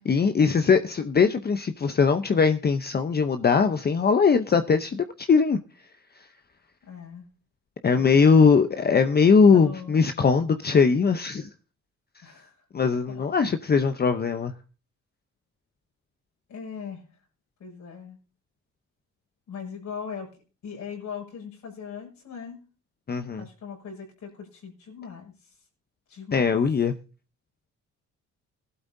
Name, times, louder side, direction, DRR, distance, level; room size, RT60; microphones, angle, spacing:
voice 1, 0.1-5.6 7.8-11.5 12.7-14.5 23.1-23.4 26.3-26.9, left 5 dB, 30° left, 0.8 m, -20 dB
voice 2, 6.8-7.3 8.0-8.2 9.5-10.0 12.2-12.5 13.1-13.2 16.5-17.0 17.6-18.2 19.5-20.3 20.6-22.6 23.4-25.3 26.1-26.5, left 6 dB, 70° left, 6.6 m, -39 dB
18.5 x 12.0 x 2.7 m
cardioid pair, 90°, 30 cm